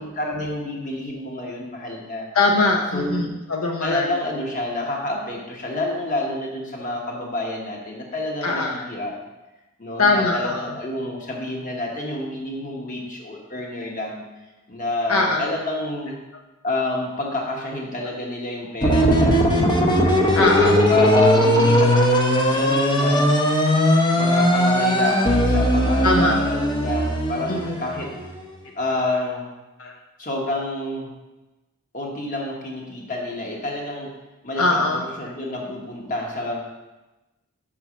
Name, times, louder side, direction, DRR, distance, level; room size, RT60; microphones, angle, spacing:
voice 1, 0.0-2.3 2.9-3.2 3.8-9.1 9.8-14.2 14.7-16.2 16.6-19.4 20.9-22.1 22.5-23.5 24.1-28.1 28.8-29.5 30.2-31.1 31.9-34.1 34.4-36.6, left 2 dB, 35° left, -1 dB, 1.2 m, -28 dB
voice 2, 2.3-4.1 8.4-8.8 10.0-10.7 15.1-15.5 20.3-20.8 22.4-22.5 26.0-26.4 27.5-27.9 29.8-29.9 34.6-35.0, left 3 dB, 75° left, 0 dB, 0.7 m, -21 dB
sound 1, 18.8-28.4, equal, 20° left, 0.7 m, -19 dB
5.5 x 4.4 x 6.1 m, 1.1 s
head